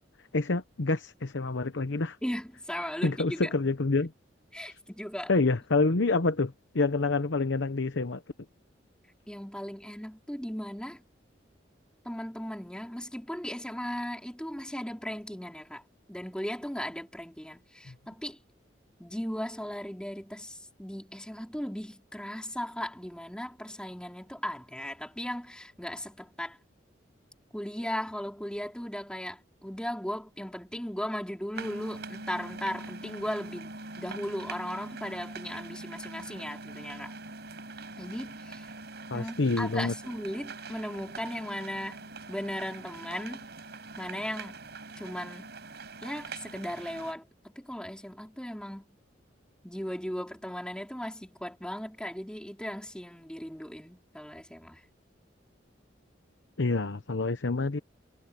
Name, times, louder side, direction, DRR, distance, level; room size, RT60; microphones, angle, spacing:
voice 1, 0.3-2.2 3.0-4.1 4.7-4.8 5.3-8.2 17.9-18.0 39.1-39.9 56.6-57.8, left 3 dB, 75° left, 0.9 m, -27 dB
voice 2, 2.2-3.5 4.5-5.3 9.3-11.0 12.0-15.8 16.1-18.4 19.0-26.6 27.5-37.1 38.0-38.7 39.1-43.5 44.0-44.6 45.0-45.5 46.0-48.9 49.6-54.8, equal, 5° left, 4.6 m, -37 dB
sound 1, 31.5-47.1, right 3 dB, 60° right, 7.8 m, -43 dB
head